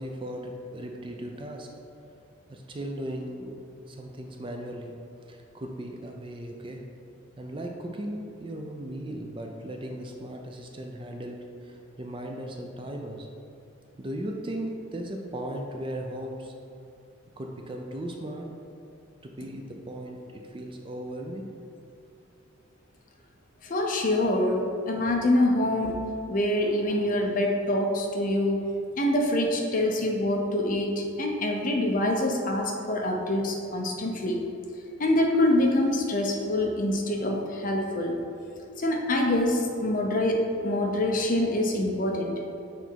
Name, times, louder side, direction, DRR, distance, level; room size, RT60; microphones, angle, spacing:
voice 1, 0.0-1.7 2.5-3.6 3.8-4.9 5.2-6.8 7.4-13.3 14.0-16.5 17.4-18.5 19.2-21.5, right 1 dB, 25° right, 2 dB, 0.4 m, -37 dB
voice 2, 23.6-26.0 26.3-28.6 29.0-34.4 35.0-38.2 38.8-42.4, left 1 dB, 40° left, 1 dB, 0.6 m, -25 dB
6.1 x 4.0 x 4.5 m, 2.5 s
head